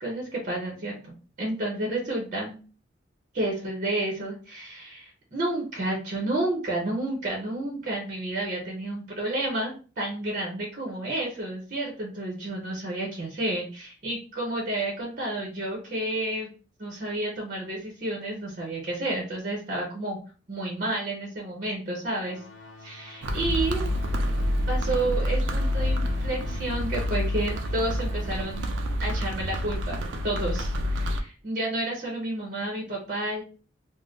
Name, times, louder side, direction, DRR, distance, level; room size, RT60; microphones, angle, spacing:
voice 1, 0.0-2.6 3.3-16.5 16.8-20.2 20.5-22.4 22.8-23.9 24.7-28.6 29.0-33.4, right 1 dB, 45° right, -1 dB, 0.7 m, -31 dB
sound 1, 22.2-28.6, left 4 dB, 85° left, 0.6 m, -46 dB
sound 2, 23.2-31.2, equal, 75° right, 0.4 m, -28 dB
2.5 x 2.0 x 3.4 m, 0.37 s
head